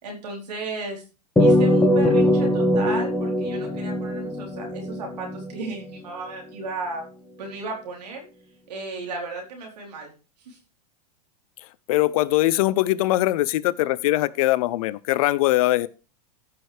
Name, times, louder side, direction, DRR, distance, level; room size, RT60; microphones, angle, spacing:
voice 1, 0.0-1.0 1.4-7.0 7.4-8.2 8.7-10.1 10.5-10.6, right 3 dB, 75° right, 4.2 m, -34 dB
sound 1, 1.4-6.0, left 1 dB, 10° left, 2.1 m, -21 dB
voice 2, 11.9-15.9, left 16 dB, 60° left, 0.6 m, -21 dB
14.5 x 6.5 x 3.4 m
hypercardioid pair, 105°, 21 cm